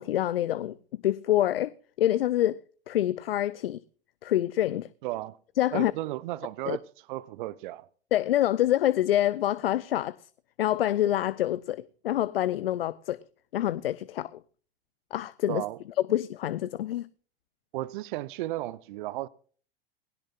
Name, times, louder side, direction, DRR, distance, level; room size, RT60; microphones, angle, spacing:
voice 1, 0.0-2.6 2.9-3.8 4.2-4.9 5.6-5.9 6.7-6.8 8.1-10.2 10.6-13.2 13.5-14.4 15.1-15.6 16.1-17.1, left 13 dB, 70° left, 0.6 m, -26 dB
voice 2, 5.0-5.4 5.7-6.8 7.1-7.9 15.5-15.8 17.7-19.3, right 16 dB, 55° right, 0.7 m, -34 dB
19.5 x 17.0 x 2.4 m
figure-of-eight pair, 90°, 30 cm